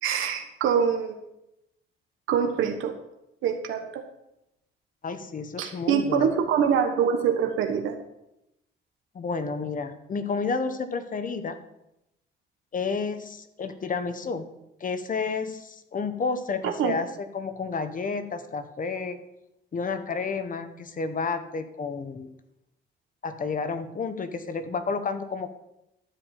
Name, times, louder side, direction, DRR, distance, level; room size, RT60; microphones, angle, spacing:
voice 1, 0.0-1.2 2.3-2.9 3.4-4.0 5.6-8.0 16.6-17.0, right 7 dB, 85° right, 5 dB, 1.3 m, -24 dB
voice 2, 5.0-6.3 9.1-11.6 12.7-17.1 17.3-19.2 19.7-22.3 23.2-25.5, left 4 dB, 40° left, 9 dB, 1.2 m, -31 dB
13.0 x 5.2 x 7.6 m, 0.87 s
cardioid pair, 90°, 20 cm